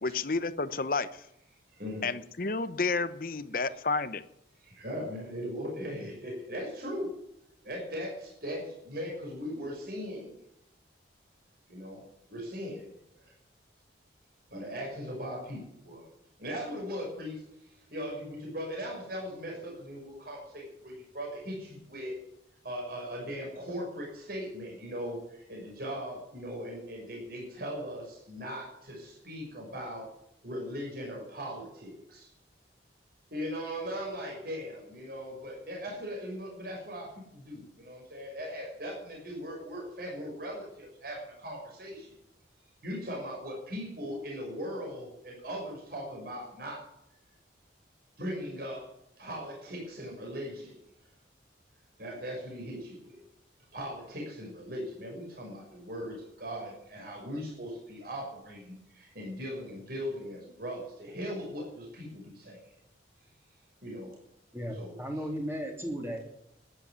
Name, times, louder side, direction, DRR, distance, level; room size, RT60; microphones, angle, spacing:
voice 1, 0.0-1.2 2.0-4.2, left 4 dB, 50° left, 13 dB, 0.9 m, -31 dB
voice 2, 1.7-2.1 4.6-7.1 7.6-10.3 11.7-12.0 12.3-12.8 13.2-13.3 14.5-16.1 16.4-17.4 17.7-22.2 22.6-30.1 30.4-32.3 33.3-42.2 42.8-46.9 48.2-50.8 52.0-53.2 53.7-62.7 63.8-64.1 64.7-65.3, equal, 50° right, -1 dB, 6.1 m, -39 dB
voice 3, 64.5-66.3, equal, 10° right, 2 dB, 3.1 m, -35 dB
13.0 x 10.5 x 9.6 m, 0.80 s
head